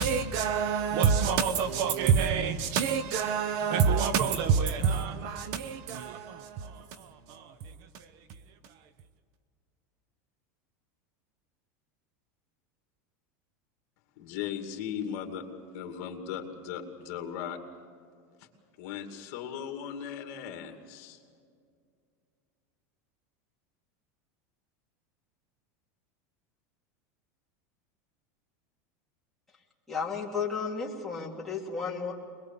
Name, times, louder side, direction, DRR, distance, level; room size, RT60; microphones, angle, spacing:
voice 1, 0.0-7.5, right 6 dB, 45° right, 0.9 m, -27 dB
voice 2, 14.2-15.5 15.7-17.6 18.4-18.5 18.8-21.2, left 8 dB, 50° left, 2.4 m, -37 dB
voice 3, 29.9-32.1, left 5 dB, 5° left, 2.7 m, -33 dB
22.5 x 21.5 x 7.2 m
supercardioid pair, 165°, 9 cm